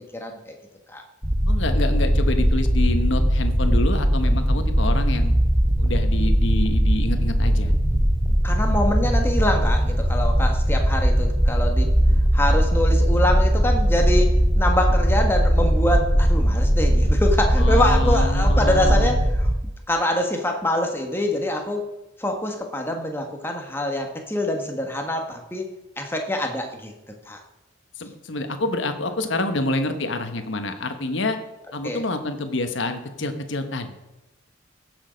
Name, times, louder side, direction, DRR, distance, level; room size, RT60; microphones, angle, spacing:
voice 1, 0.1-0.5 0.9-1.0 8.4-11.9 12.3-14.3 14.6-19.2 19.9-21.8 22.2-25.6 26.0-26.9 27.3-27.4 31.8-32.0, left 1 dB, 10° left, 3 dB, 1.4 m, -25 dB
sound 1, 1.2-19.5, equal, 10° right, 1.0 m, -19 dB
voice 2, 1.5-5.4 5.8-7.7 17.6-19.1 28.0-31.4 31.7-33.9, left 2 dB, 70° left, 7 dB, 1.1 m, -27 dB
16.0 x 6.4 x 5.2 m, 1.0 s
head